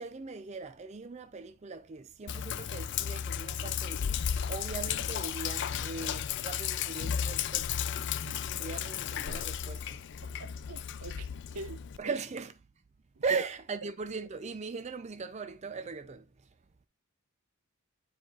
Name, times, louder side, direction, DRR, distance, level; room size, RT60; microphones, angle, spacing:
voice 1, 0.0-4.2 4.5-7.8 8.3-10.0 12.0-12.5 13.2-16.3, right 4 dB, 30° right, 0.4 m, -39 dB
Sink (filling or washing), 2.3-12.0, left 8 dB, 55° left, 0.4 m, -34 dB
voice 2, 10.4-11.3 11.5-12.1 13.3-13.4, right 3 dB, 75° right, 0.7 m, -42 dB
9.9 x 4.6 x 2.4 m
head